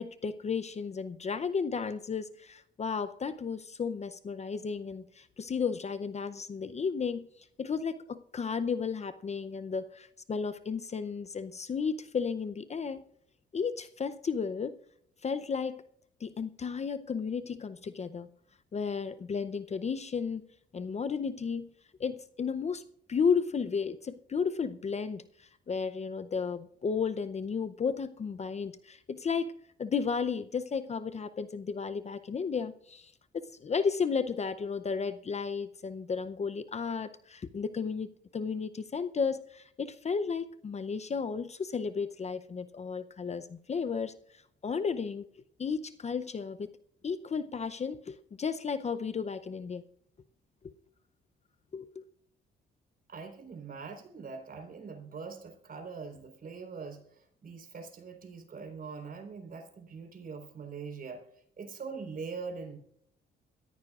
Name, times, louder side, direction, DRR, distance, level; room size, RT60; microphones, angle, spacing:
voice 1, 0.0-7.3 7.6-13.0 13.5-14.8 15.2-15.8 16.2-18.3 18.7-20.4 20.7-21.7 22.0-33.1 33.6-44.1 44.6-45.2 45.6-46.7 47.0-49.8 50.6-50.7 51.7-52.0, left 5 dB, 35° left, 0.6 m, -33 dB
voice 2, 53.1-62.8, right 5 dB, 45° right, 4.1 m, -43 dB
22.5 x 14.5 x 2.4 m
cardioid pair, 90°, 20 cm